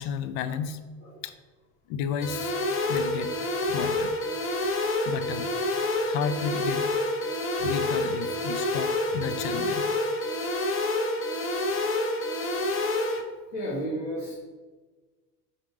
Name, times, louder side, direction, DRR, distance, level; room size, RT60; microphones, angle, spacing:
voice 1, 0.0-0.8 1.2-1.3 1.9-2.5 2.9-3.4 3.7-4.1 5.0-5.5 6.0-6.9 7.6-9.9, left 7 dB, 65° left, 11 dB, 0.7 m, -32 dB
sound 1, 2.2-13.2, left 2 dB, 25° left, 0.8 m, -28 dB
voice 2, 13.5-14.3, equal, 85° left, -7 dB, 1.8 m, -32 dB
5.1 x 4.0 x 4.7 m, 1.3 s
hypercardioid pair, 80°, 47 cm